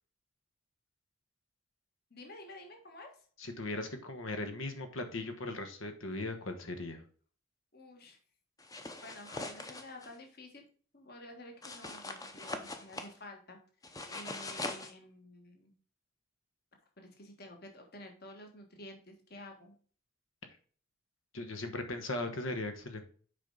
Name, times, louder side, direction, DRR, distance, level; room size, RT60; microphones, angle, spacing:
voice 1, 2.1-3.2 7.7-8.2 9.0-10.6 10.9-13.6 14.1-15.7 17.0-19.7, left 1 dB, 50° left, 3 dB, 1.5 m, -51 dB
voice 2, 3.4-7.0 21.3-23.0, left 2 dB, 80° left, 7 dB, 1.3 m, -38 dB
sound 1, 8.6-10.1 11.6-13.1 13.8-14.9, left 2 dB, 15° left, 0.7 m, -42 dB
7.4 x 5.2 x 3.9 m, 0.44 s
head